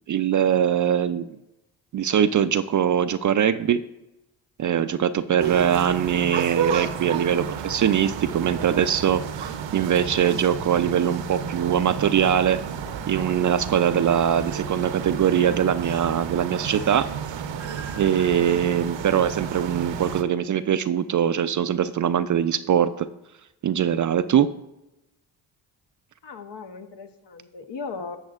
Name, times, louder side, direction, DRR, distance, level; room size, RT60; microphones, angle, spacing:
voice 1, 0.1-1.4 1.9-3.8 4.6-12.6 13.1-17.1 17.9-23.1 23.6-24.5, right 9 dB, 40° right, 12 dB, 0.4 m, -22 dB
sound 1, 5.4-20.2, right 7 dB, 65° right, 0.8 m, -32 dB
voice 2, 26.2-28.2, left 4 dB, 60° left, 8 dB, 1.0 m, -37 dB
10.5 x 7.6 x 2.4 m, 0.93 s
supercardioid pair, 50°, 49 cm